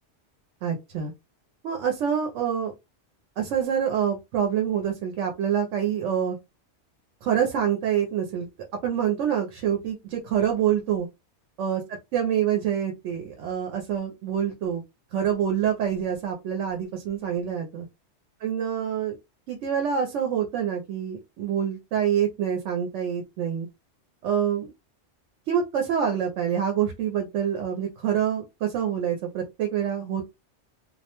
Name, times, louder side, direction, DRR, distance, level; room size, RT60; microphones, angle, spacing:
voice 1, 0.6-1.1 1.6-2.7 3.4-6.4 7.2-8.5 8.8-11.1 11.6-11.8 12.1-14.8 15.1-17.9 18.4-19.2 19.5-23.7 24.2-24.7 25.5-30.2, right 9 dB, 90° right, 3 dB, 0.9 m, -26 dB
2.3 x 2.1 x 2.8 m, 0.24 s
omnidirectional pair, 1.2 m